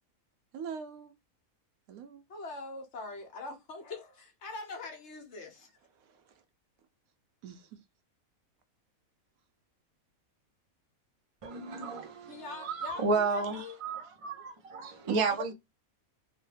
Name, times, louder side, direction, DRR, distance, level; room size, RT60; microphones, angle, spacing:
voice 1, 0.5-1.1 1.9-2.2 6.0-6.4 7.4-7.8 15.0-15.2, right 6 dB, 90° right, 1.1 m, -42 dB
voice 2, 2.3-5.7 12.3-13.8, left 3 dB, 60° left, 1.0 m, -43 dB
voice 3, 11.4-15.5, right 4 dB, 60° right, 0.3 m, -32 dB
3.0 x 2.1 x 3.2 m
omnidirectional pair, 1.5 m